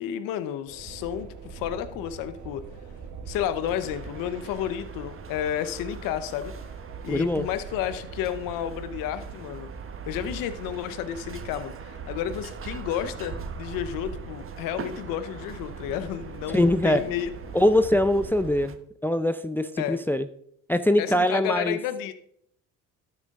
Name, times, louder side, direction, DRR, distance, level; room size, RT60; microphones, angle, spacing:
voice 1, 0.0-2.6 3.3-6.5 7.0-9.7 10.1-17.3 19.8-20.0 21.0-22.1, left 10 dB, 90° left, 12 dB, 0.9 m, -31 dB
sound 1, 0.7-18.5, right 5 dB, 60° right, 1.9 m, -42 dB
sound 2, 3.6-18.8, right 6 dB, 40° right, 1.2 m, -42 dB
voice 2, 7.1-7.5 16.5-17.0 17.5-18.8 19.0-20.2 20.7-21.8, left 1 dB, 5° left, 10 dB, 0.5 m, -22 dB
12.5 x 8.1 x 3.7 m, 0.69 s
cardioid pair, 85°, 33 cm